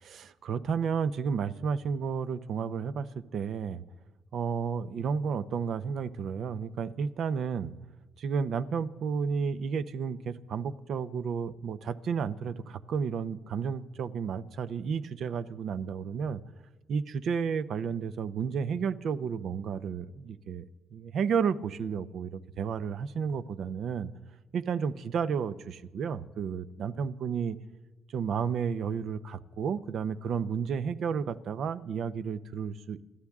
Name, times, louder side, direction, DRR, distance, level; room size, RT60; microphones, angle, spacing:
voice 1, 0.0-3.8 4.3-7.7 8.2-16.4 16.9-20.6 20.9-24.1 24.5-27.6 28.1-33.0, right 6 dB, 65° right, 13 dB, 0.7 m, -32 dB
28.0 x 13.0 x 3.6 m, 1.2 s
cardioid pair, 90°, 0 cm